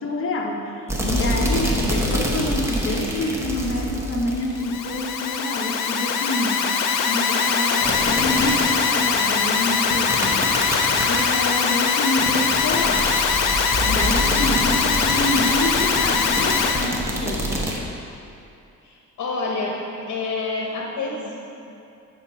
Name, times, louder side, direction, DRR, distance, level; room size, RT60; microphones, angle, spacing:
voice 1, 0.0-6.7 7.1-10.5 11.1-13.2 13.8-17.5, left 1 dB, 40° left, 0 dB, 1.0 m, -27 dB
sound 1, 0.9-5.1 7.8-17.8, equal, 10° right, 1.0 m, -27 dB
Alarm, 4.6-16.9, left 6 dB, 85° left, 0.7 m, -22 dB
voice 2, 18.8-19.8 20.1-21.3, left 3 dB, 65° left, -3 dB, 1.3 m, -28 dB
7.9 x 4.5 x 5.6 m, 2.6 s
cardioid pair, 120°, 31 cm